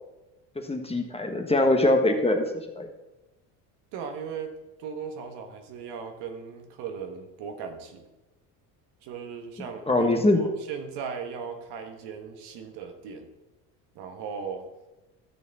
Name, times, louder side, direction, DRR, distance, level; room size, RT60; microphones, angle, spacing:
voice 1, 0.5-2.4 2.8-2.9 9.9-10.4, left 2 dB, 15° left, 4 dB, 1.4 m, -22 dB
voice 2, 3.9-4.5 4.8-8.0 9.0-13.3 13.9-14.6, right 6 dB, 70° right, 5 dB, 1.5 m, -37 dB
13.0 x 6.5 x 4.2 m, 1.0 s
supercardioid pair, 80°, 42 cm